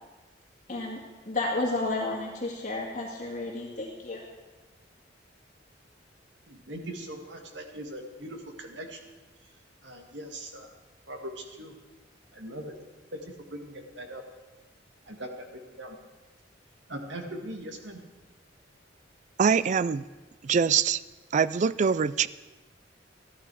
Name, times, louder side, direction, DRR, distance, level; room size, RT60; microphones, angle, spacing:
voice 1, 1.3-4.2, left 2 dB, 40° left, -3 dB, 2.0 m, -31 dB
voice 2, 6.5-9.0 9.8-10.7 11.1-11.7 12.3-12.7 13.1-14.2 15.1-16.0 16.9-18.0, right 1 dB, 70° right, 3 dB, 1.9 m, -40 dB
voice 3, 19.4-20.0 20.4-21.0 21.3-22.3, right 6 dB, 40° right, 18 dB, 0.3 m, -23 dB
14.5 x 12.0 x 4.8 m, 1.2 s
head